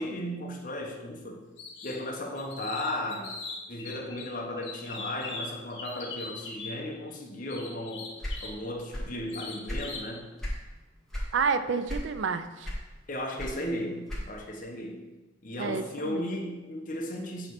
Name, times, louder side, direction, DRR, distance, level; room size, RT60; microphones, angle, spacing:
voice 1, 0.0-1.5 1.8-3.4 3.7-8.1 8.4-10.3 13.1-15.0 15.4-17.5, left 1 dB, 45° left, 2 dB, 1.0 m, -35 dB
sound 1, 1.6-2.0 2.4-4.2 4.6-6.7 7.5-8.6 9.3-10.1, left 3 dB, 70° left, 1.3 m, -40 dB
sound 2, 8.2-9.2 9.5-10.7 11.1-11.4 11.9-12.3 12.6-14.5, equal, ahead, 1.6 m, -35 dB
voice 2, 11.3-12.7 15.6-16.3, right 5 dB, 75° right, 11 dB, 0.4 m, -29 dB
7.6 x 3.2 x 5.9 m, 1.1 s
head